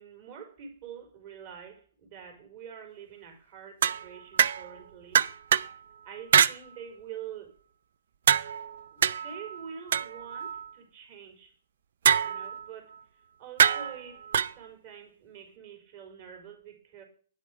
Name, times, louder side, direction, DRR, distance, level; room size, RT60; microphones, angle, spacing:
voice 1, 0.0-5.3 6.0-7.5 8.9-11.6 12.2-17.0, right 8 dB, 45° right, 4.8 m, -46 dB
sound 1, 3.8-4.8 5.1-5.8 6.3-6.6 8.3-10.7 12.1-12.7 13.6-14.5, right 8 dB, 65° right, 0.5 m, -25 dB
9.9 x 8.3 x 5.1 m
hypercardioid pair, 130°, 0 cm